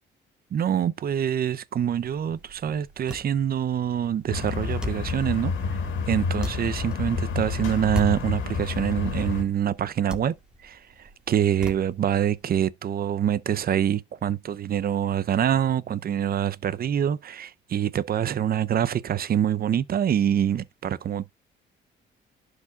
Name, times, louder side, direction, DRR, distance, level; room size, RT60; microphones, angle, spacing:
voice 1, 0.5-5.5 6.1-10.3 10.6-10.8 11.3-21.3, right 9 dB, 50° right, 0.6 m, -25 dB
sound 1, 1.9-12.4, left 1 dB, 5° right, 2.0 m, -42 dB
sound 2, 4.3-9.4, left 5 dB, 90° left, 2.1 m, -29 dB
12.0 x 5.0 x 2.4 m
cardioid pair, 90°, 20 cm